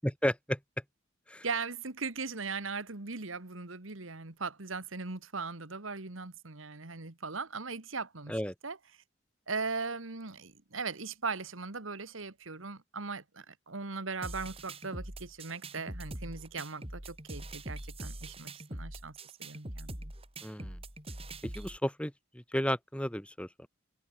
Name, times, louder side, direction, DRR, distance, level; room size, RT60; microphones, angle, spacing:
voice 1, 0.0-0.6 1.3-1.5 8.3-8.5 20.4-20.8 21.4-23.7, equal, 5° left, 2.8 m, -33 dB
voice 2, 1.4-8.8 9.5-20.1, right 4 dB, 80° right, 2.0 m, -39 dB
sound 1, 14.2-21.8, right 1 dB, 30° right, 4.6 m, -43 dB
open air
head